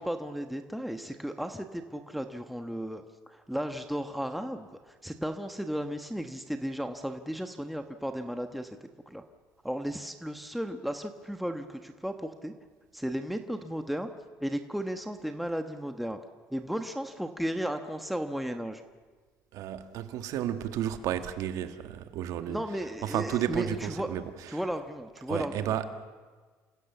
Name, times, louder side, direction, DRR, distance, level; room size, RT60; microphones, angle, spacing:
voice 1, 0.0-9.2 9.6-12.5 12.9-14.1 14.4-16.2 16.5-18.8 22.5-24.1 24.5-25.8, equal, ahead, 6 dB, 1.2 m, -35 dB
voice 2, 19.5-22.6 23.0-24.2 25.3-25.8, right 10 dB, 75° right, 8 dB, 1.7 m, -32 dB
29.0 x 16.5 x 7.2 m, 1.4 s
cardioid pair, 110°, 6 cm